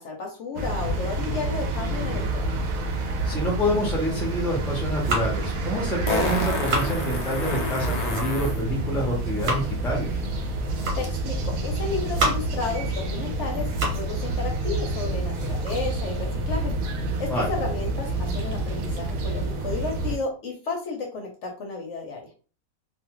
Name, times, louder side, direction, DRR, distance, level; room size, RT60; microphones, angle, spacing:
voice 1, 0.0-2.6 11.0-16.7 17.2-22.2, left 4 dB, 65° left, 1 dB, 0.8 m, -33 dB
sound 1, 0.6-20.2, right 2 dB, 75° right, 1.0 m, -28 dB
voice 2, 3.2-10.2 17.3-17.5, equal, ahead, -2 dB, 0.6 m, -27 dB
sound 2, 4.8-5.5 6.2-6.9 7.7-8.6 9.0-9.7 10.5-11.2 11.7-12.6 13.1-14.1 14.5-14.6 15.0-16.8, right 2 dB, 60° right, 1.3 m, -32 dB
Fart, 5.0-5.1 6.1-8.6 11.0-11.1, left 2 dB, 85° left, 0.3 m, -30 dB
2.5 x 2.3 x 2.9 m, 0.37 s
omnidirectional pair, 1.5 m